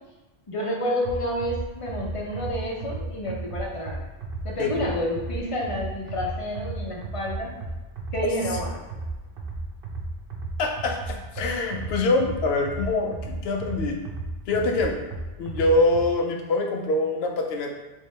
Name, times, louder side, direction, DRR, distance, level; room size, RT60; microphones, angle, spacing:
voice 1, 0.5-4.0 4.4-7.5 8.1-8.8, equal, 35° left, -2 dB, 0.6 m, -29 dB
sound 1, 1.0-16.0, right 2 dB, 60° right, 0.7 m, -34 dB
voice 2, 10.6-14.0 14.5-15.0 15.4-17.7, left 2 dB, 75° left, 3 dB, 0.8 m, -24 dB
3.3 x 3.2 x 3.2 m, 1.2 s
omnidirectional pair, 1.1 m